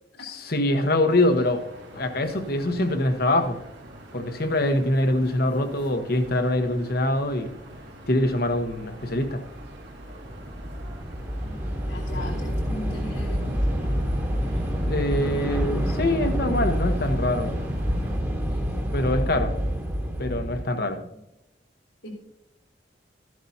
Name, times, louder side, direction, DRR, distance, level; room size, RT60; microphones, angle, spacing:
voice 1, 0.2-1.6 1.9-3.6 4.1-7.5 8.1-9.4 14.8-17.5 18.9-19.5 20.2-21.0, left 1 dB, 55° left, 7 dB, 1.2 m, -24 dB
sound 1, 1.1-18.2, right 1 dB, 75° right, 2.4 m, -45 dB
Train / Subway metro underground, 7.6-7.8 8.1-20.6, equal, 15° right, 1.3 m, -28 dB
voice 2, 11.4-14.1 20.9-21.0 22.0-22.1, left 1 dB, 85° left, -1 dB, 3.5 m, -39 dB
13.5 x 11.0 x 2.8 m, 0.86 s
head